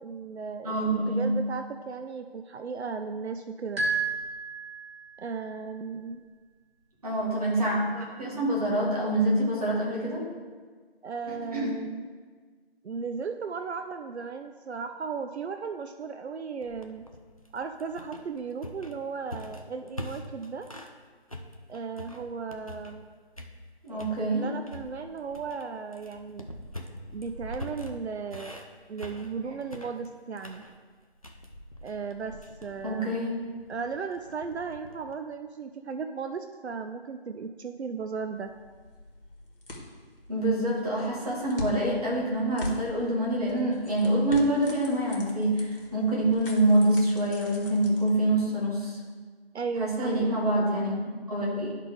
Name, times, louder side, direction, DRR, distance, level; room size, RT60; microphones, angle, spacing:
voice 1, 0.0-3.8 5.2-6.2 11.0-12.0 12.8-17.1 17.5-20.7 21.7-23.1 23.9-26.5 27.1-28.6 28.9-30.6 31.8-33.2 33.7-38.5 49.5-50.4, right 5 dB, 85° right, 7 dB, 0.5 m, -36 dB
voice 2, 0.6-1.3 7.0-10.3 11.5-11.8 23.8-24.5 32.8-33.3 40.3-49.0 49.8-51.7, right 1 dB, 35° right, -4 dB, 1.8 m, -26 dB
sound 1, 3.8-5.3, right 4 dB, 65° right, 2.1 m, -31 dB
sound 2, 16.6-21.0 21.3-23.1 23.3-24.2 24.7-35.1, equal, 35° left, 0.4 m, -44 dB
sound 3, 38.3-48.6, left 1 dB, 55° left, 1.6 m, -43 dB
11.5 x 4.1 x 3.6 m, 1.5 s
figure-of-eight pair, 165°, 32 cm